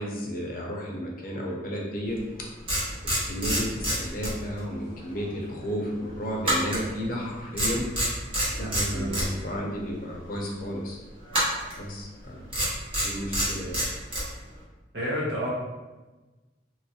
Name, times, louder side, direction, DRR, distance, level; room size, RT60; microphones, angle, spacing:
voice 1, 0.0-2.2 3.0-7.8 8.6-11.0 11.7-12.5 13.0-13.8, equal, 50° left, -2 dB, 0.5 m, -33 dB
sound 1, 2.2-2.3 2.7-4.7 5.0-5.2 6.4-7.3 7.6-9.3 11.3-11.8 12.5-14.3, right 1 dB, 30° right, 0.9 m, -27 dB
voice 2, 8.7-9.4 14.9-15.5, equal, 65° right, -5 dB, 0.8 m, -30 dB
3.1 x 2.3 x 2.7 m, 1.2 s
head